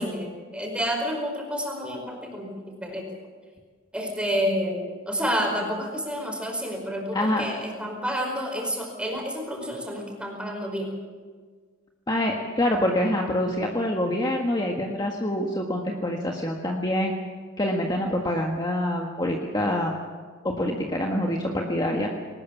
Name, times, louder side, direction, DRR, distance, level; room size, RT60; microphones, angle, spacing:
voice 1, 0.0-3.1 3.9-10.9, equal, 5° right, 1 dB, 4.9 m, -29 dB
voice 2, 7.1-7.4 12.1-17.1 17.6-19.9 20.4-22.1, left 1 dB, 20° left, 0 dB, 1.7 m, -26 dB
20.5 x 19.5 x 7.3 m, 1.6 s
head